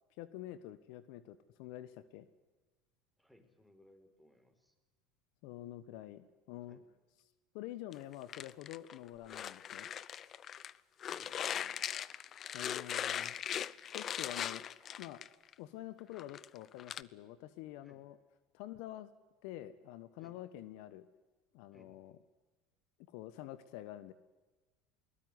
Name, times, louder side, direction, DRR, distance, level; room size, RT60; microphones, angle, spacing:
voice 1, 0.2-2.3 5.4-6.8 7.5-9.9 12.5-13.3 13.9-14.6 15.0-15.2 15.6-18.2 18.5-19.1 19.4-21.1 21.5-22.1 23.1-24.1, left 14 dB, 70° left, 15 dB, 1.2 m, -47 dB
voice 2, 3.2-4.8 6.7-6.9 11.0-11.7 17.8-18.0 20.2-20.4 21.7-21.9, left 1 dB, 5° left, 7 dB, 5.2 m, -63 dB
sound 1, 7.9-10.7 11.0-15.5 16.0-17.0, left 9 dB, 40° left, 0.8 m, -40 dB
21.5 x 20.0 x 9.7 m, 1.2 s
hypercardioid pair, 90°, 0 cm